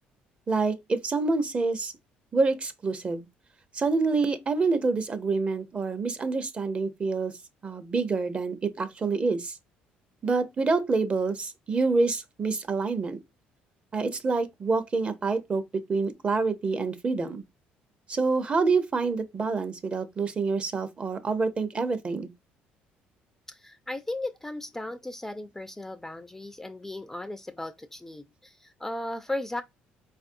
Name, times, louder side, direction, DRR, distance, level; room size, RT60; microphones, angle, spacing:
voice 1, 0.5-1.9 2.3-3.3 3.7-7.3 7.6-9.6 10.2-13.2 13.9-15.6 15.9-17.4 18.1-22.3, right 4 dB, 35° right, 0.6 m, -27 dB
voice 2, 23.5-29.6, left 1 dB, 10° left, 0.4 m, -36 dB
4.1 x 2.5 x 2.5 m
supercardioid pair, 85°, 4 cm